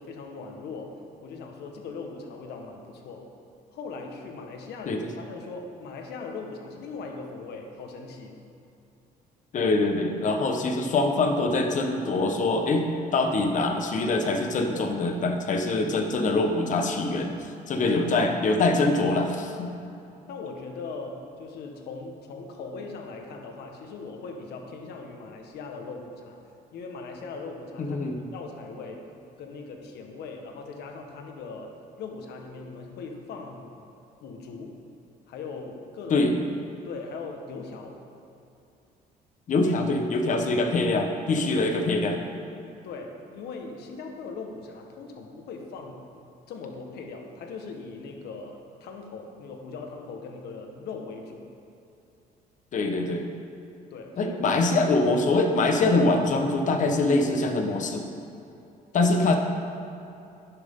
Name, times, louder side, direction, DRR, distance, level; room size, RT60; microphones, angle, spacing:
voice 1, 0.0-3.3 3.7-8.4 20.3-26.4 26.7-28.0 28.3-29.1 29.4-33.7 34.2-34.8 35.3-36.3 36.8-38.0 42.8-46.0 46.5-51.5 53.9-54.4, left 4 dB, 75° left, 3 dB, 1.5 m, -39 dB
voice 2, 9.5-12.9 13.1-19.7 27.8-28.2 36.1-36.3 39.5-42.2 52.7-53.3 54.2-58.0 58.9-59.4, left 2 dB, 50° left, 4 dB, 1.3 m, -24 dB
11.5 x 10.5 x 3.9 m, 2.8 s
cardioid pair, 110°, 17 cm